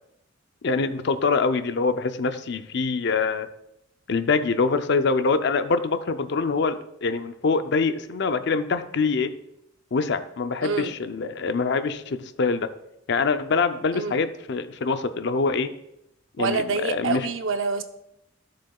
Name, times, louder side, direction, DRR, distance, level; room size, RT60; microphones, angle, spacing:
voice 1, 0.6-3.5 4.1-9.3 9.9-12.7 13.1-15.7 16.4-17.3, left 4 dB, 65° left, 10 dB, 0.5 m, -24 dB
voice 2, 10.6-10.9 13.9-14.2 16.4-17.8, right 4 dB, 80° right, 8 dB, 0.7 m, -26 dB
15.0 x 6.5 x 2.3 m, 0.83 s
head